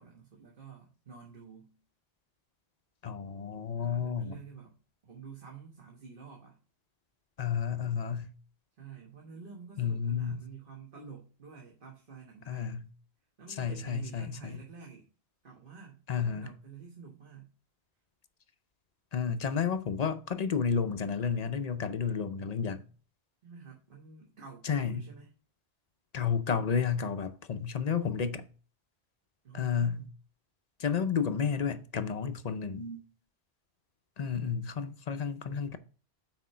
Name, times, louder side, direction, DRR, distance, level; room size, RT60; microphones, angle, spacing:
voice 1, 0.0-1.8 3.8-4.8 5.0-6.6 8.8-12.8 13.4-15.1 15.4-17.5 23.4-25.3 29.4-30.1, right 6 dB, 50° right, 1.4 m, -49 dB
voice 2, 3.0-4.4 7.4-8.3 9.8-10.4 12.5-12.9 13.6-14.6 16.1-16.5 19.1-22.8 24.6-25.1 26.1-28.5 29.5-30.0 30.8-33.0 34.2-35.8, left 6 dB, 45° left, 0.6 m, -31 dB
6.2 x 4.3 x 5.6 m
omnidirectional pair, 1.1 m